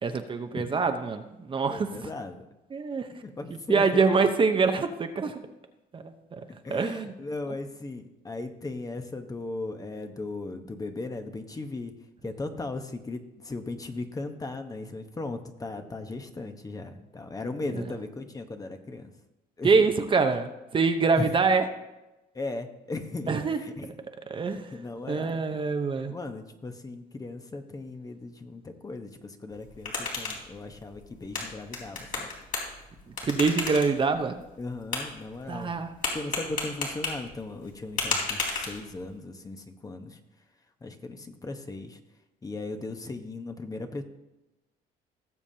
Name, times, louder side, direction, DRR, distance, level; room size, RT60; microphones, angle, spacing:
voice 1, 0.0-2.0 2.7-3.1 3.7-5.4 5.9-6.4 6.7-7.1 7.5-7.6 17.7-17.8 19.6-21.6 23.3-23.6 24.3-24.7 25.1-26.1 33.2-34.4 35.5-35.9, right 4 dB, 30° right, 6 dB, 0.8 m, -25 dB
voice 2, 1.7-2.5 3.2-4.0 6.5-11.9 12.2-19.1 19.6-19.7 21.2-21.3 22.3-23.9 24.7-25.4 26.1-32.3 34.6-35.7 36.1-40.2 40.8-42.0 42.4-44.0, left 2 dB, 20° left, 6 dB, 1.0 m, -37 dB
sound 1, 29.5-39.2, left 3 dB, 55° left, 3.4 m, -35 dB
18.0 x 7.2 x 2.8 m, 1.0 s
cardioid pair, 110°, 17 cm